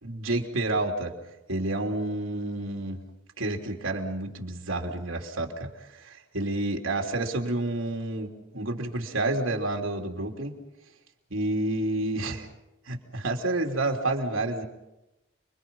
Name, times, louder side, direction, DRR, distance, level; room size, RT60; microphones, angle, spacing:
voice 1, 0.0-1.1 1.5-3.0 3.4-10.5 11.3-12.5 12.9-14.6, right 2 dB, 85° right, 1 dB, 3.4 m, -29 dB
30.0 x 23.0 x 5.6 m, 0.95 s
head